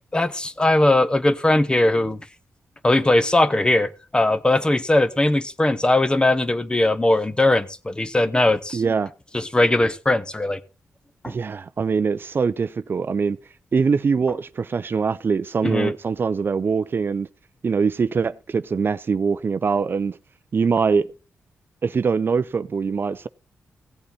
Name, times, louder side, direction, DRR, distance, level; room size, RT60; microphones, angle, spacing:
voice 1, 0.1-2.2 2.8-8.8 9.3-10.6 11.2-11.3 15.6-15.9, left 2 dB, 20° left, 1.0 m, -20 dB
voice 2, 8.7-9.1 11.3-13.4 13.7-17.3 17.6-20.2 20.5-21.1 21.8-23.3, right 5 dB, 50° right, 0.5 m, -23 dB
16.0 x 8.4 x 4.2 m
cardioid pair, 75°, 5 cm